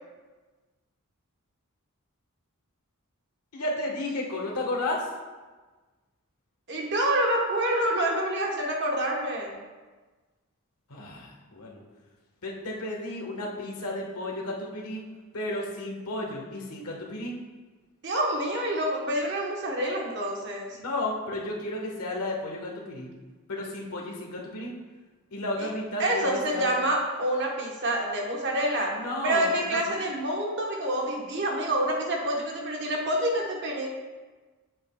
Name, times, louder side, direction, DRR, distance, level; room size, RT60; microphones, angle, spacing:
voice 1, 3.5-5.1 10.9-11.8 12.4-15.0 15.3-17.3 20.7-23.1 23.5-24.7 25.3-26.7 28.9-30.0, left 1 dB, 85° left, -1 dB, 1.4 m, -33 dB
voice 2, 6.7-9.5 18.0-20.8 25.6-25.7 26.0-29.0 29.2-33.9, right 1 dB, 55° right, 0 dB, 1.2 m, -27 dB
7.8 x 7.4 x 2.3 m, 1.3 s
head